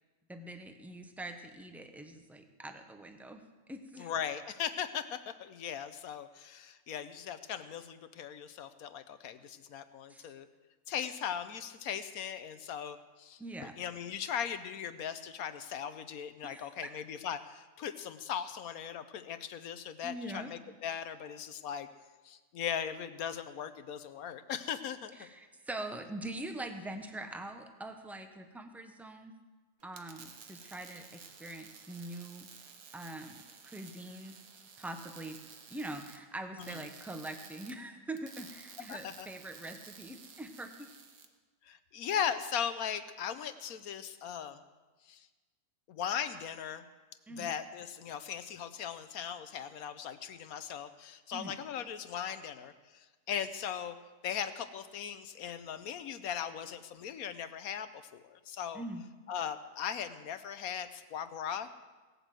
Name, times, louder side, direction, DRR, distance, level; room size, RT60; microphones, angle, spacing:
voice 1, 0.3-3.4 3.7-4.1 10.1-10.3 13.4-13.7 16.4-16.9 20.0-20.5 25.2-29.3 29.8-32.5 32.9-34.3 34.8-35.4 35.7-40.9 47.3-47.6 51.3-51.5 58.7-59.0, right 1 dB, ahead, 6 dB, 0.7 m, -43 dB
voice 2, 4.0-10.5 10.9-13.4 13.8-21.9 22.2-25.3 36.6-36.8 38.9-39.3 41.6-44.6 45.1-45.3 45.9-46.8 47.3-54.0 54.2-58.8 59.3-61.7, left 8 dB, 75° left, 11 dB, 1.2 m, -38 dB
sound 1, 29.8-41.3, right 6 dB, 70° right, 1.5 m, -53 dB
17.5 x 8.1 x 7.6 m, 1.3 s
omnidirectional pair, 1.6 m